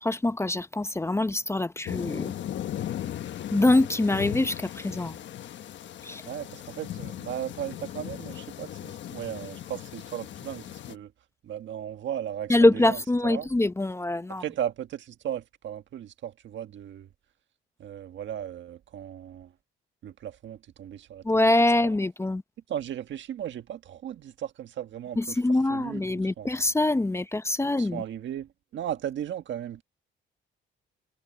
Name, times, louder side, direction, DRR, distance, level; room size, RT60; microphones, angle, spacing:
voice 1, 0.0-2.3 3.5-5.2 6.0-6.2 12.5-14.4 21.2-22.4 25.2-28.0, left 2 dB, 15° left, 0.8 m, -24 dB
sound 1, 1.9-11.0, left 11 dB, 70° left, 1.3 m, -37 dB
voice 2, 6.2-11.1 11.4-13.5 14.4-17.1 17.8-19.5 20.0-21.2 21.7-21.9 22.7-25.4 25.7-26.5 27.8-29.8, right 10 dB, 70° right, 1.6 m, -36 dB
cardioid pair, 90°, 20 cm